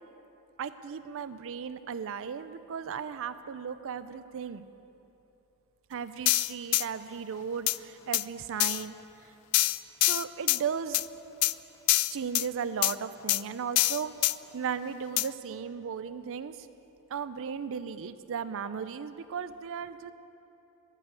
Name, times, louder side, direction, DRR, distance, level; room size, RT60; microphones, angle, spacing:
voice 1, 0.6-4.7 5.9-8.9 9.2-9.3 10.0-11.0 12.1-14.3 14.5-16.7 17.1-20.1, right 7 dB, 65° right, 13 dB, 0.5 m, -36 dB
sound 1, 6.3-6.8 7.7-7.8 8.1-8.2 8.6-8.8 9.5-10.6 10.9-11.1 11.4-11.5 11.9-12.5 12.8-12.9 13.3-13.4 13.8-14.3 15.2-15.3, left 20 dB, 80° left, 0.3 m, -25 dB
11.0 x 9.8 x 8.9 m, 3.0 s
head